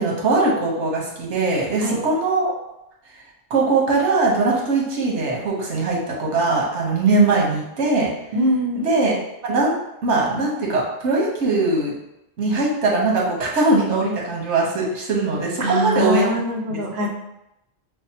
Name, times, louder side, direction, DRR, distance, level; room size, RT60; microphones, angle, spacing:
voice 1, 0.0-2.5 3.5-8.1 8.8-9.7 10.0-11.9 12.4-16.3 16.7-16.8, right 3 dB, 85° right, -3 dB, 1.3 m, -21 dB
voice 2, 8.3-8.8 15.6-17.1, equal, 65° right, 1 dB, 0.8 m, -23 dB
5.8 x 2.0 x 2.8 m, 0.86 s
omnidirectional pair, 1.2 m